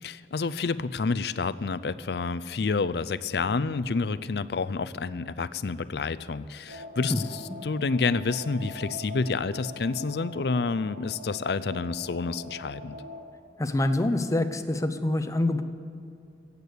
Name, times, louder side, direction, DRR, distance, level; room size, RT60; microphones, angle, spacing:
voice 1, 0.0-13.0, left 4 dB, 70° left, 14 dB, 0.5 m, -29 dB
sound 1, 6.7-13.2, left 1 dB, 80° right, 2.6 m, -43 dB
voice 2, 13.6-15.6, left 1 dB, 20° left, 8 dB, 0.7 m, -25 dB
16.0 x 8.3 x 8.3 m, 2.7 s
head